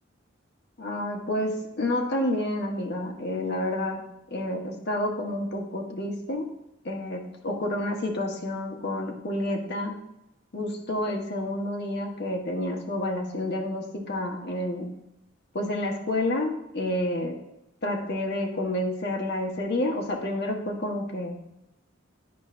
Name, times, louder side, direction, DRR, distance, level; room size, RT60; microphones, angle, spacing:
voice 1, 0.8-6.5 6.8-10.0 10.5-14.9 15.5-17.4 17.8-21.4, left 1 dB, 60° left, 1 dB, 1.1 m, -29 dB
9.8 x 5.4 x 2.5 m, 0.88 s
head